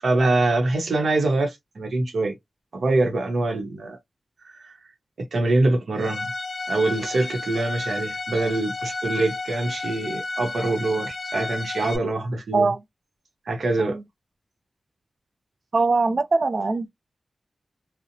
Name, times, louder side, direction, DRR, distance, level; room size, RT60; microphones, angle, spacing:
voice 1, 0.0-2.3 2.7-4.0 4.4-4.7 5.2-6.3 6.7-12.7 13.5-14.0, right 2 dB, 75° right, 0.8 m, -24 dB
Bowed string instrument, 6.0-12.0, left 3 dB, 45° left, 0.4 m, -32 dB
voice 2, 15.7-16.9, right 3 dB, 50° right, 0.4 m, -22 dB
2.8 x 2.0 x 2.6 m
wide cardioid pair, 130°, 0 cm